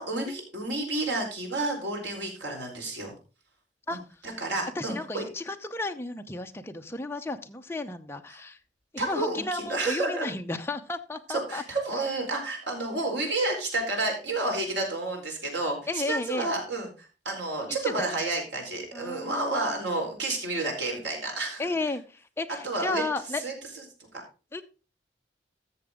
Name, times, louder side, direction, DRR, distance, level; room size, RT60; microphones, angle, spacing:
voice 1, 0.0-3.1 3.9-5.2 9.0-10.3 11.3-21.6 22.6-23.0 23.4-23.8 24.1-24.2, right 2 dB, 90° right, 1 dB, 4.2 m, -30 dB
voice 2, 4.8-8.6 8.9-11.6 15.9-16.5 17.8-18.2 18.9-19.8 21.6-23.4 24.5-24.6, left 2 dB, 15° left, 6 dB, 0.7 m, -33 dB
14.0 x 6.9 x 3.7 m, 0.33 s
head